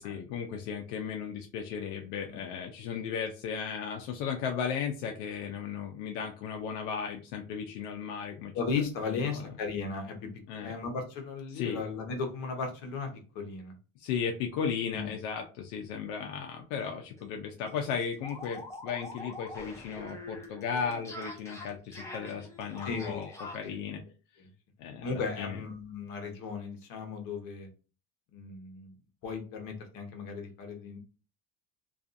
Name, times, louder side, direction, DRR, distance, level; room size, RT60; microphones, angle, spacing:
voice 1, 0.0-8.5 9.1-9.5 10.5-10.7 11.5-11.8 14.0-24.0 24.8-25.6, left 7 dB, 90° left, 2 dB, 0.5 m, -35 dB
voice 2, 8.5-10.2 10.6-13.7 14.9-15.1 22.8-23.4 23.6-23.7 25.0-27.7 28.3-28.9 29.2-31.0, left 4 dB, 65° left, 3 dB, 0.9 m, -36 dB
sound 1, 16.8-16.9 17.2-17.3 17.6-23.8, left 1 dB, 10° left, 0.5 m, -44 dB
2.5 x 2.4 x 2.5 m, 0.35 s
cardioid pair, 145°, 36 cm